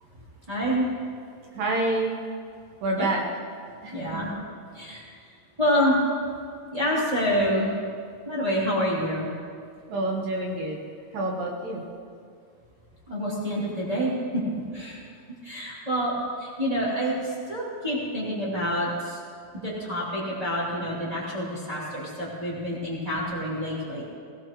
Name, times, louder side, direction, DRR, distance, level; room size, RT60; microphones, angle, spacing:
voice 1, 0.5-0.8 3.0-3.1 3.9-4.3 4.7-5.1 5.6-6.0 6.7-7.7 8.3-9.3 13.1-14.4 14.7-15.0 15.4-16.1 16.4-19.2 19.6-24.0, equal, 10° right, -7 dB, 2.3 m, -27 dB
voice 2, 1.5-2.2 2.8-3.2 3.8-4.2 9.9-10.8 11.1-11.8, right 2 dB, 70° right, -1 dB, 2.6 m, -28 dB
17.0 x 16.5 x 3.1 m, 2.2 s
omnidirectional pair, 4.6 m